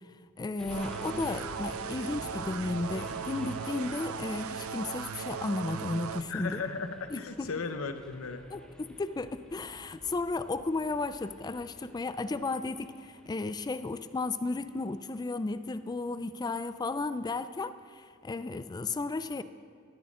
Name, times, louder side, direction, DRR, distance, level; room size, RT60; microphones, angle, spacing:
voice 1, 0.4-6.6 7.1-7.5 8.5-19.4, left 3 dB, 20° left, 12 dB, 0.3 m, -34 dB
sound 1, 0.6-16.9, left 1 dB, 5° left, 1.0 m, -50 dB
sound 2, 0.7-6.2, right 6 dB, 80° right, 0.5 m, -38 dB
voice 2, 6.3-8.5, left 4 dB, 75° left, 8 dB, 0.8 m, -36 dB
13.5 x 13.5 x 3.7 m, 2.2 s
head